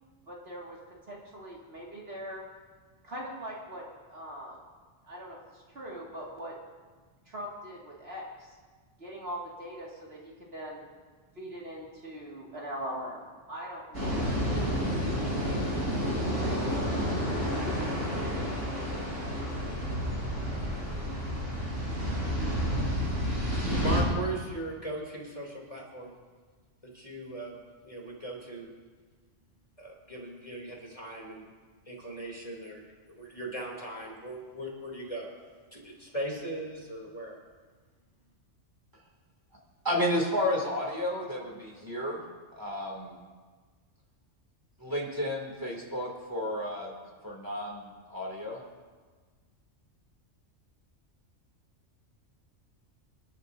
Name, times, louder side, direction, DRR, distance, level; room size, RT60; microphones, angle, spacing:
voice 1, 0.3-0.8 1.1-2.4 3.0-4.6 5.0-6.6 7.3-8.6 9.0-10.9 11.3-15.0, equal, 55° right, -4 dB, 2.4 m, -41 dB
sound 1, 13.9-24.0, equal, 80° right, 4.3 m, -30 dB
voice 2, 23.6-26.1 26.9-27.5 27.8-28.7 29.8-31.4 31.9-35.3 35.7-37.4, right 1 dB, 25° left, -3 dB, 3.1 m, -38 dB
voice 3, 39.8-42.2 42.6-43.2 44.8-47.0 47.2-48.6, left 1 dB, 15° right, -2 dB, 2.6 m, -32 dB
26.0 x 11.5 x 2.7 m, 1.4 s
omnidirectional pair, 1.3 m